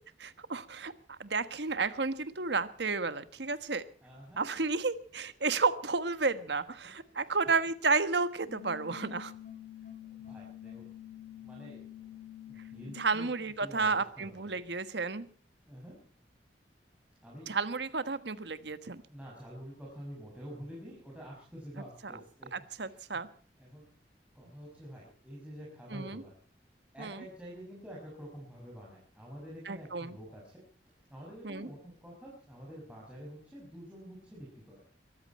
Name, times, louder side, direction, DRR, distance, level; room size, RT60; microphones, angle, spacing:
voice 1, 0.2-3.8 4.4-9.3 12.9-15.3 17.5-19.0 22.0-22.1 22.5-23.3 25.9-26.2 27.0-27.2 29.7-30.2 31.4-31.7, right 4 dB, 75° right, 13 dB, 1.4 m, -32 dB
voice 2, 4.0-4.4 7.2-7.3 9.8-10.9 11.3-12.1 12.5-14.6 15.7-15.9 17.2-17.5 19.1-22.5 22.8-23.0 23.6-23.9 24.3-26.3 26.9-30.6 31.1-34.8, equal, 5° right, -5 dB, 6.1 m, -48 dB
sound 1, 8.5-13.4, left 11 dB, 40° left, 3.8 m, -48 dB
23.0 x 14.0 x 4.3 m, 0.43 s
head